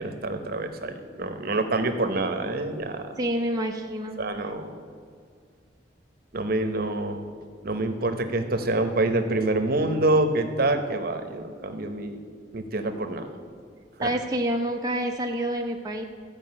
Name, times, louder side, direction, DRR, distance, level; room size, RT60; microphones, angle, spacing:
voice 1, 0.0-3.1 4.2-4.8 6.3-7.3 7.6-12.2 12.5-13.4 14.0-14.1, right 2 dB, 55° right, 8 dB, 1.0 m, -26 dB
voice 2, 3.2-4.2 14.0-16.0, right 1 dB, 20° right, 1 dB, 0.7 m, -27 dB
13.0 x 5.1 x 8.7 m, 2.1 s
head